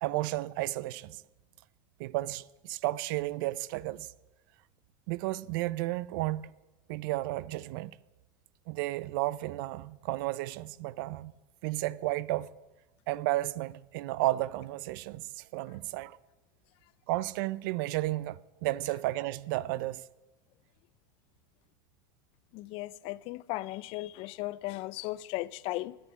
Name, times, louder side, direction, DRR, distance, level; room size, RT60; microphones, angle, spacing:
voice 1, 0.0-1.2 2.0-4.1 5.1-6.5 6.9-8.0 8.7-11.3 11.6-12.5 13.1-16.2 17.1-20.0, right 17 dB, 65° right, 0.4 m, -33 dB
voice 2, 22.5-26.0, left 18 dB, 50° left, 0.4 m, -36 dB
10.5 x 7.0 x 9.3 m
supercardioid pair, 120°, 12 cm